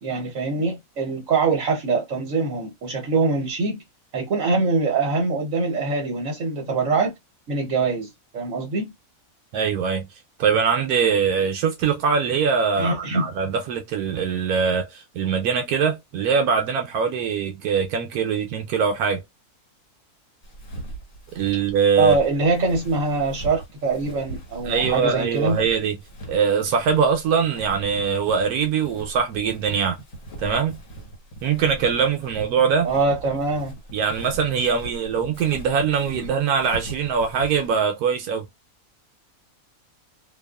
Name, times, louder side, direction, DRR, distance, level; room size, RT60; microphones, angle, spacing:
voice 1, 0.0-3.8 4.1-7.1 7.5-8.9 12.8-13.3 22.0-25.6 32.8-33.8 36.2-36.3, right 3 dB, 60° right, 1.2 m, -23 dB
voice 2, 9.5-10.1 10.4-19.2 21.3-22.2 24.6-26.0 26.3-30.0 30.4-30.8 31.4-32.9 33.9-38.4, right 6 dB, 85° right, 1.1 m, -22 dB
Walk footsteps, 20.4-37.8, right 2 dB, 60° left, 1.5 m, -40 dB
2.8 x 2.3 x 2.3 m
omnidirectional pair, 1.6 m